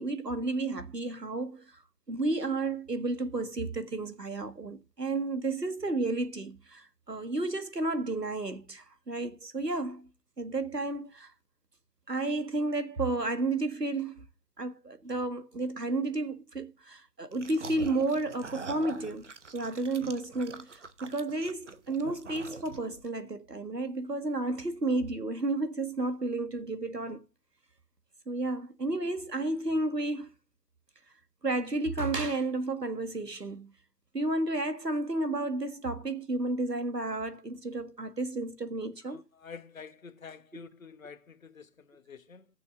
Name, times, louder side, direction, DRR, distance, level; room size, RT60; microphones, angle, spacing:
voice 1, 0.0-1.7 2.1-10.1 10.4-11.3 12.1-14.2 14.6-27.2 28.3-30.3 31.4-33.7 34.1-39.2, right 2 dB, 80° right, 1.8 m, -32 dB
sound 1, 17.3-23.1, right 4 dB, 45° right, 1.1 m, -44 dB
voice 2, 39.1-42.5, left 5 dB, 55° left, 1.1 m, -48 dB
20.5 x 6.9 x 2.5 m
figure-of-eight pair, 150°, 48 cm